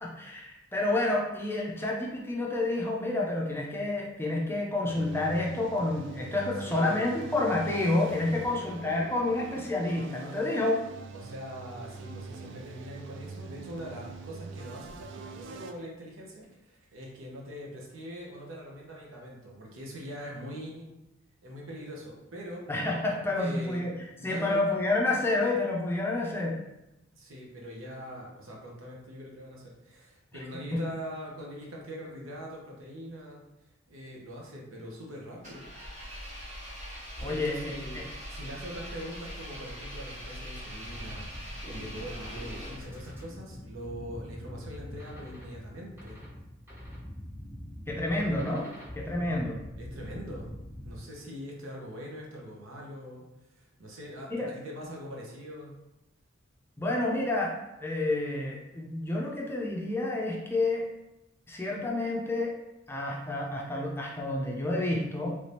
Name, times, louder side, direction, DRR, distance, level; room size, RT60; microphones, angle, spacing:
voice 1, 0.0-10.8 22.7-23.9 24.2-26.6 30.7-30.8 37.2-38.1 47.9-48.7 48.9-49.6 54.3-54.5 56.8-60.9 61.5-62.6 62.9-65.3, left 2 dB, 10° left, -2 dB, 0.5 m, -29 dB
sound 1, 4.9-15.7, right 4 dB, 60° right, 0.3 m, -44 dB
voice 2, 6.6-7.0 10.6-10.7 11.1-21.0 21.4-22.7 23.4-24.6 27.1-33.4 33.9-35.7 37.2-46.2 49.8-50.5 50.8-53.2 53.5-55.8, equal, 90° right, -2 dB, 0.9 m, -42 dB
Engine, 35.4-43.2, equal, 40° right, 1.0 m, -42 dB
sound 2, 40.8-51.0, left 1 dB, 10° right, 0.8 m, -44 dB
3.2 x 2.7 x 3.3 m, 0.93 s
head